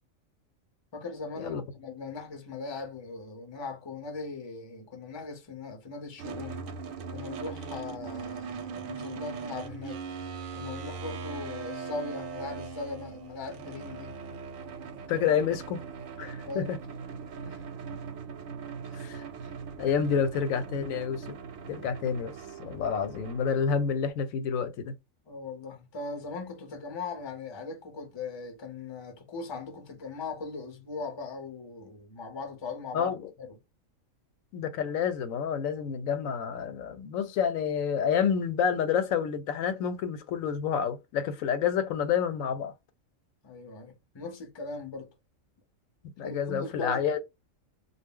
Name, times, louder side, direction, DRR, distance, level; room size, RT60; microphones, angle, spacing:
voice 1, 0.9-6.7 7.1-10.0 10.5-14.1 16.5-16.7 17.4-17.6 25.2-33.6 43.4-45.1 46.2-47.0, left 4 dB, 30° left, 0.5 m, -39 dB
sound 1, 6.2-24.1, right 5 dB, 85° right, 1.0 m, -40 dB
voice 2, 15.1-15.8 16.2-16.8 18.9-19.2 19.8-21.4 21.7-22.3 22.6-24.9 32.9-33.3 34.5-42.7 46.2-47.2, left 7 dB, 90° left, 1.0 m, -29 dB
2.3 x 2.0 x 3.5 m
omnidirectional pair, 1.4 m